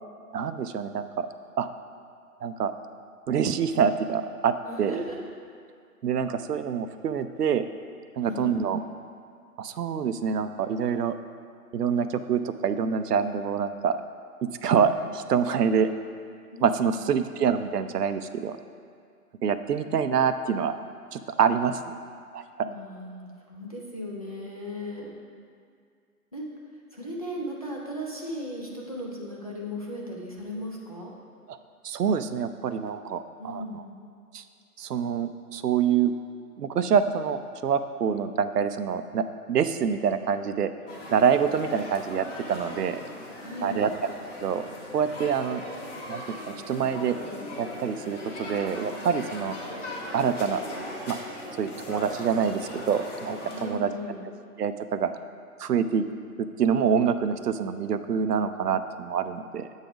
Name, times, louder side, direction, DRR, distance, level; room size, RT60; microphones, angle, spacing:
voice 1, 0.3-1.3 1.6-1.7 2.4-2.7 3.3-5.0 6.0-7.7 8.2-8.8 9.6-11.2 11.7-14.0 14.4-15.9 16.6-18.6 19.4-20.7 21.1-21.9 22.3-22.7 31.5-31.6 31.8-33.8 34.3-34.4 34.8-36.1 36.6-40.7 41.1-43.0 43.6-43.9 44.4-44.7 44.9-45.6 46.1-47.2 47.6-49.6 50.1-50.6 51.1-51.2 51.6-53.9 54.6-55.1 55.6-56.1 56.4-59.7, right 7 dB, 85° right, 10 dB, 0.6 m, -26 dB
voice 2, 4.6-5.2 8.2-8.7 16.5-17.0 22.6-25.2 26.3-26.4 26.9-31.1 33.4-33.9 43.4-43.9 49.3-49.5 53.5-54.2, equal, 25° left, -4 dB, 0.5 m, -37 dB
sound 1, 40.9-53.6, left 1 dB, 50° left, 1.5 m, -39 dB
8.1 x 4.0 x 4.9 m, 2.3 s
figure-of-eight pair, 150°, 46 cm